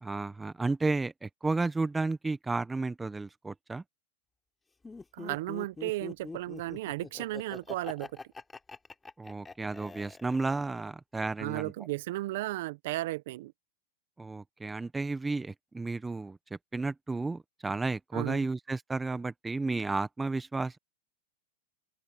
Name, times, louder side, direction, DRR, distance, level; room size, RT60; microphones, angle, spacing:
voice 1, 0.0-3.8 9.2-11.7 14.2-16.4 16.7-20.8, right 3 dB, 10° right, 1.2 m, -32 dB
Laughter, 4.8-10.8, left 3 dB, 10° left, 4.1 m, -44 dB
voice 2, 5.1-8.1 11.4-13.5 18.1-18.5, right 18 dB, 65° right, 1.1 m, -34 dB
open air
hypercardioid pair, 115°, 0 cm